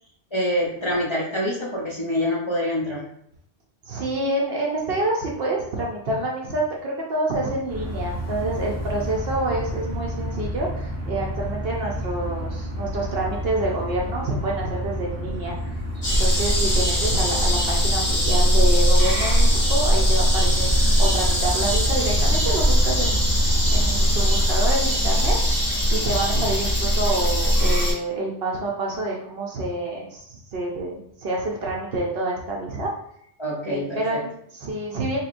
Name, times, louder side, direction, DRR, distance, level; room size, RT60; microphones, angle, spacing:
voice 1, 0.3-3.0 33.4-34.0, equal, 35° left, -6 dB, 0.6 m, -25 dB
voice 2, 3.9-15.7 16.0-32.9 33.7-35.2, right 2 dB, 65° right, -2 dB, 0.8 m, -28 dB
sound 1, 7.7-24.5, equal, 20° right, 0.5 m, -31 dB
sound 2, 16.0-27.9, equal, 55° left, 1.7 m, -20 dB
3.9 x 2.9 x 2.5 m, 0.71 s
omnidirectional pair, 1.1 m